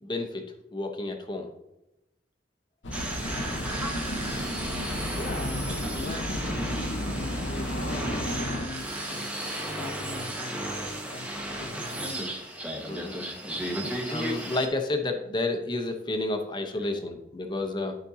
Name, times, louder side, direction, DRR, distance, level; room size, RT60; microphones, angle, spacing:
voice 1, 0.0-1.5 12.9-13.2 13.8-18.0, left 2 dB, 25° left, 4 dB, 0.9 m, -31 dB
sound 1, 2.8-8.6, left 1 dB, 90° left, 1.0 m, -33 dB
sound 2, 2.9-14.7, right 1 dB, 5° right, 1.0 m, -34 dB
voice 2, 5.1-12.3 12.6-12.8 13.4-13.8 14.1-14.2 16.8-16.9 17.6-17.8, left 3 dB, 55° left, 5 dB, 0.4 m, -41 dB
12.0 x 5.2 x 2.8 m, 0.92 s
head